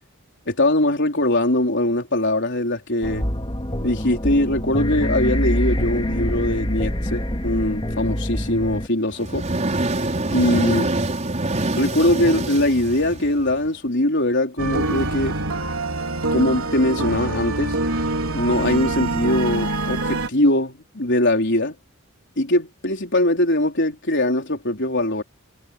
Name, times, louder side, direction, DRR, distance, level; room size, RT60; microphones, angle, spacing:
voice 1, 0.5-3.2 3.8-9.4 10.3-10.9 11.8-15.4 16.3-17.8 18.3-21.8 22.4-25.2, left 1 dB, 55° left, 4.4 m, -21 dB
sound 1, 3.0-8.9, equal, 25° left, 2.2 m, -25 dB
sound 2, 9.1-13.7, right 2 dB, 35° right, 5.5 m, -25 dB
sound 3, 14.6-20.3, right 2 dB, 80° right, 3.8 m, -25 dB
head